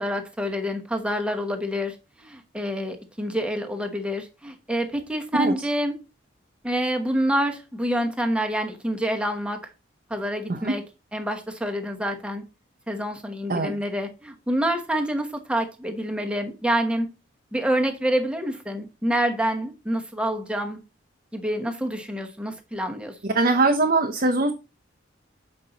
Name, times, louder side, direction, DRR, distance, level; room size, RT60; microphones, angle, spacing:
voice 1, 0.0-6.0 6.6-9.6 10.1-10.8 11.1-12.4 12.9-17.1 17.5-20.8 21.3-23.1, equal, 5° right, 1.0 m, -27 dB
voice 2, 23.3-24.5, right 3 dB, 45° right, 0.7 m, -21 dB
7.4 x 5.3 x 3.9 m
head